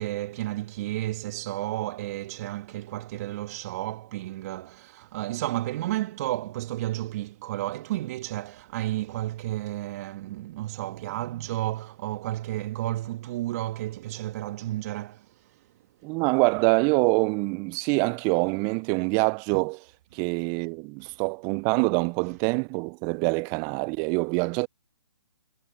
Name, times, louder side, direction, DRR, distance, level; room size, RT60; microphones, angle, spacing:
voice 1, 0.0-15.7 20.1-20.2 21.0-21.1, right 15 dB, 35° right, 1.6 m, -32 dB
voice 2, 16.0-19.8 20.1-24.7, right 33 dB, 20° right, 0.4 m, -25 dB
figure-of-eight pair, 135°, 14 cm